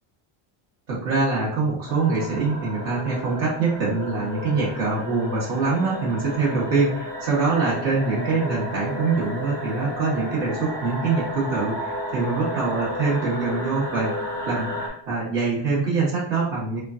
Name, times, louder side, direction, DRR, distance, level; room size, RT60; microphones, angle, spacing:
voice 1, 0.9-14.1 14.4-16.8, right 4 dB, 60° right, -7 dB, 1.2 m, -24 dB
sound 1, 1.9-14.9, equal, 5° left, 0.6 m, -33 dB
3.1 x 2.2 x 2.4 m, 0.63 s
cardioid pair, 135°, 50 cm